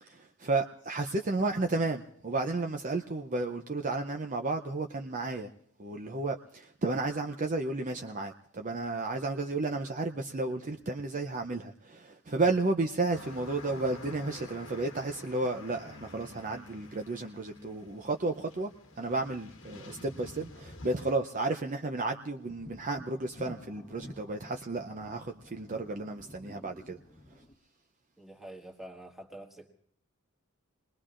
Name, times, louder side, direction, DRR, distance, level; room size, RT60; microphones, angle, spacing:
voice 1, 0.0-5.5 5.8-18.7 19.0-27.0, right 3 dB, 35° right, 0.6 m, -32 dB
sound 1, 13.1-21.1, left 2 dB, 60° left, 1.3 m, -49 dB
sound 2, 15.8-20.2, left 1 dB, 90° right, 1.9 m, -55 dB
sound 3, 22.5-27.5, left 1 dB, 20° left, 1.0 m, -51 dB
voice 2, 28.2-29.7, right 1 dB, ahead, 1.6 m, -47 dB
28.5 x 20.5 x 2.5 m
head